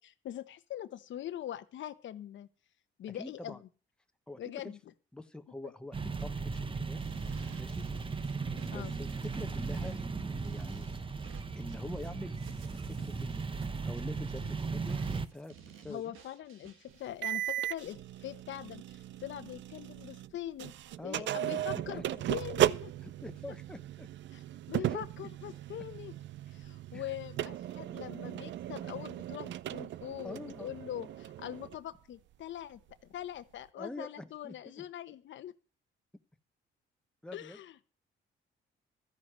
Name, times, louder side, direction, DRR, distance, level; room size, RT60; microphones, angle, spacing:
voice 1, 0.2-2.5 3.0-3.6 4.4-4.8 5.6-5.7 8.7-9.0 15.9-20.7 21.0-22.9 24.3-24.4 24.7-26.1 26.5-32.8 33.1-35.5 37.3-37.8, left 12 dB, 70° left, 11 dB, 1.1 m, -42 dB
voice 2, 3.2-3.6 4.3-4.7 5.1-7.0 7.6-7.9 8.6-10.9 11.6-12.4 12.7-13.5 13.8-16.0 21.0-22.2 23.0-24.1 24.8-25.0 26.9-27.1 27.8-27.9 30.2-30.7 33.8-34.8 37.2-37.6, left 1 dB, 5° left, 7 dB, 1.1 m, -45 dB
sound 1, 5.9-15.3, right 4 dB, 25° right, 1.1 m, -37 dB
sound 2, 7.0-17.1, right 8 dB, 85° right, 1.5 m, -56 dB
sound 3, 17.2-20.3 20.6-31.7, right 13 dB, 70° right, 0.5 m, -36 dB
13.5 x 9.7 x 6.2 m, 0.37 s
cardioid pair, 90°, 20 cm